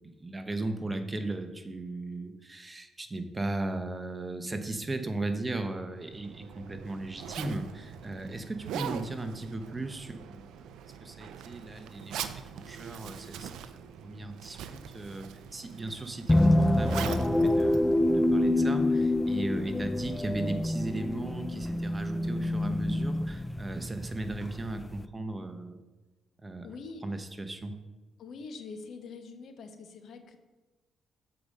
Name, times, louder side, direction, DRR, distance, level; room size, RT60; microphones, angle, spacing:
voice 1, 0.2-10.7 11.0-13.5 14.0-15.3 15.5-25.8 26.4-26.7 27.0-27.8, right 2 dB, 20° right, 8 dB, 0.7 m, -36 dB
Zipper (clothing), 6.0-18.6, right 8 dB, 85° right, 0.4 m, -42 dB
sound 1, 16.3-25.0, left 1 dB, 10° left, 0.4 m, -27 dB
voice 2, 26.6-27.0 28.2-30.4, left 4 dB, 65° left, 7 dB, 0.8 m, -44 dB
7.0 x 4.8 x 5.2 m, 1.2 s
cardioid pair, 90°, 0 cm